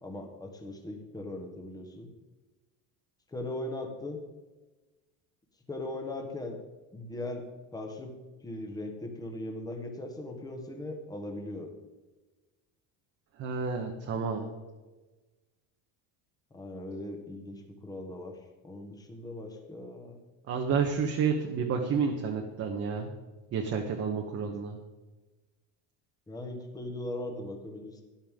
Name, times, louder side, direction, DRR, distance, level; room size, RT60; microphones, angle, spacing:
voice 1, 0.0-2.1 3.3-4.2 5.7-6.6 6.9-8.1 8.4-11.7 16.5-18.4 18.6-20.2 26.3-28.0, left 1 dB, 10° left, 3 dB, 1.4 m, -39 dB
voice 2, 13.4-14.5 20.5-23.1 23.5-24.8, right 6 dB, 35° right, 2 dB, 1.2 m, -30 dB
13.0 x 11.0 x 3.7 m, 1.2 s
cardioid pair, 165°, 41 cm